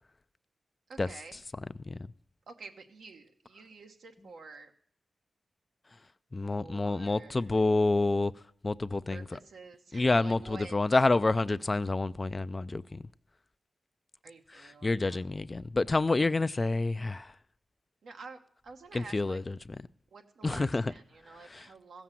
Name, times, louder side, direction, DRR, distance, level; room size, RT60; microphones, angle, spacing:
voice 1, 0.9-1.4 2.5-4.7 6.4-7.5 9.1-10.8 14.2-15.2 18.0-19.4 20.1-22.0, right 4 dB, 80° right, 1.1 m, -49 dB
voice 2, 6.3-8.3 8.6-9.2 9.9-13.0 14.8-17.3 18.9-19.6 20.4-20.9 21.5-21.6, left 2 dB, 35° left, 0.4 m, -28 dB
15.0 x 7.2 x 7.5 m
cardioid pair, 55°, 0 cm